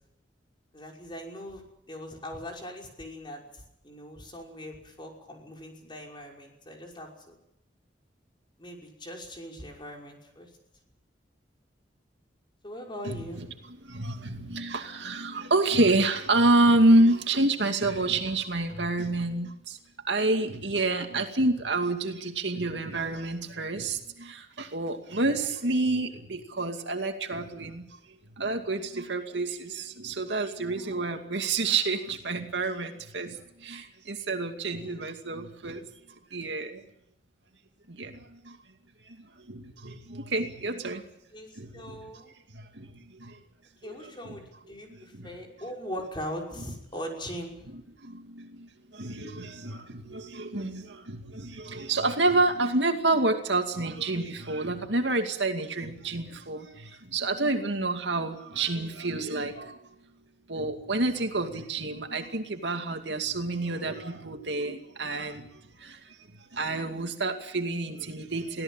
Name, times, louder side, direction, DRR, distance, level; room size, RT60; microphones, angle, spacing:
voice 1, 0.7-7.3 8.6-10.5 12.6-13.5 34.7-35.0 41.3-42.3 43.8-47.7, equal, 25° left, 0 dB, 5.6 m, -40 dB
voice 2, 13.8-19.8 20.1-27.9 28.4-35.9 36.3-36.8 37.9-38.6 39.1-39.2 39.5-41.0 41.6-42.0 42.5-43.4 43.8-44.0 44.9-45.4 47.7-59.8 60.5-66.0 66.5-68.6, right 2 dB, 70° right, 5 dB, 2.4 m, -28 dB
24.0 x 17.0 x 9.0 m, 0.82 s
head